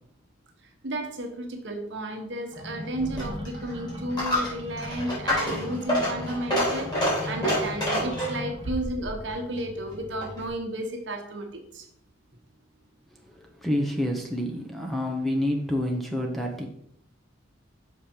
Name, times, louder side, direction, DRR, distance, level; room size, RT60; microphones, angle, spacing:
voice 1, 0.8-11.8, right 1 dB, 60° right, 3 dB, 1.2 m, -33 dB
sound 1, 2.5-8.7, left 1 dB, 25° right, 1.3 m, -39 dB
Coin (dropping), 3.0-10.5, equal, 20° left, 3.0 m, -29 dB
voice 2, 13.2-16.7, left 1 dB, ahead, 2 dB, 0.7 m, -28 dB
6.2 x 5.2 x 4.4 m, 0.72 s
head